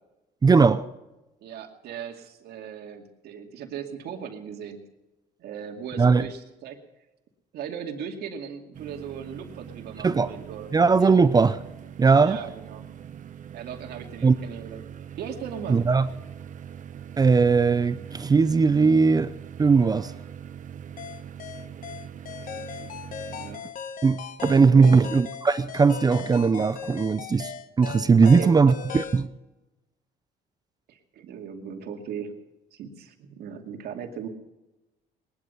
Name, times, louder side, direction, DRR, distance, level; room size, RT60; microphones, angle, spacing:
voice 1, 0.4-0.8 6.0-6.2 10.0-10.3 10.7-11.6 12.0-12.4 14.2-14.3 15.7-16.1 17.2-19.3 19.6-20.1 24.0-27.5 27.8-29.3, right 4 dB, 25° right, 0.6 m, -19 dB
voice 2, 1.4-4.8 5.4-6.8 7.5-10.7 11.0-11.2 12.2-12.8 13.5-14.8 15.2-15.8 22.3-23.0 23.3-23.7 24.7-25.1 28.2-28.8 30.9-32.3 32.7-34.3, right 7 dB, 70° right, 2.4 m, -38 dB
sound 1, 8.7-23.6, right 8 dB, 50° right, 1.1 m, -42 dB
sound 2, 21.0-29.3, left 7 dB, 55° left, 1.2 m, -38 dB
20.0 x 12.0 x 5.6 m
cardioid pair, 110°, 17 cm